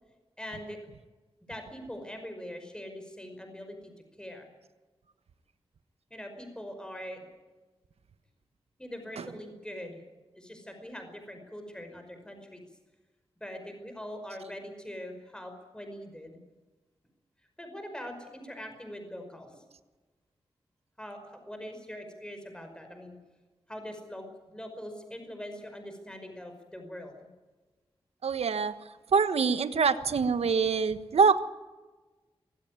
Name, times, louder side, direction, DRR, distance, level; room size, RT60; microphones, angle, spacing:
voice 1, 0.4-0.8 1.5-3.9 4.2-4.5 6.1-7.2 8.8-10.0 10.3-12.6 13.4-16.4 17.6-19.6 21.0-23.2 23.7-27.3, equal, 10° left, 5 dB, 5.2 m, -42 dB
voice 2, 28.2-28.7 29.1-31.4, right 5 dB, 85° right, 12 dB, 1.3 m, -24 dB
24.0 x 16.0 x 9.5 m, 1.2 s
wide cardioid pair, 95°, 10 cm